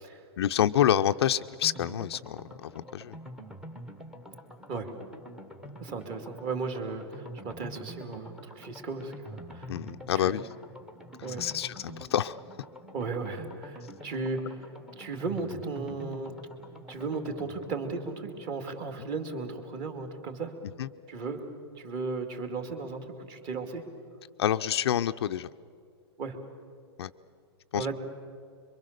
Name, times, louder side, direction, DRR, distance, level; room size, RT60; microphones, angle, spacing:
voice 1, 0.4-3.2 9.7-10.4 11.4-12.4 20.8-20.9 24.4-25.5 27.0-27.1 27.7-27.9, left 10 dB, 65° left, 9 dB, 0.6 m, -27 dB
sound 1, 1.6-20.2 20.5-20.6 20.9-21.0, equal, 5° right, 1.1 m, -46 dB
voice 2, 5.8-9.7 10.1-10.4 11.2-11.4 12.9-16.3 16.9-20.5 21.1-21.5 21.8-23.8 26.2-26.4 27.7-28.0, right 4 dB, 30° right, 6 dB, 2.3 m, -35 dB
26.0 x 23.0 x 6.6 m, 2.3 s
hypercardioid pair, 160°, 14 cm